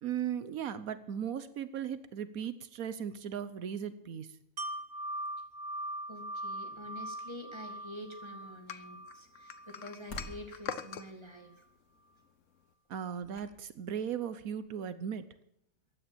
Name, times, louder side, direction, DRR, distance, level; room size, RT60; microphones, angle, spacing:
voice 1, 0.0-4.3 12.9-15.2, right 8 dB, 80° right, 13 dB, 1.3 m, -37 dB
Wind chime, 4.6-10.4 10.8-10.9, right 1 dB, 60° right, 1.9 m, -41 dB
voice 2, 6.1-11.6, left 1 dB, 20° right, 4 dB, 2.4 m, -47 dB
sound 1, 8.7-11.1, left 8 dB, 65° left, 1.2 m, -42 dB
sound 2, 9.6-11.2 12.8-12.9 13.2-14.1 14.6-14.8, left 1 dB, 85° left, 2.9 m, -49 dB
15.0 x 9.9 x 8.9 m, 0.76 s
omnidirectional pair, 1.5 m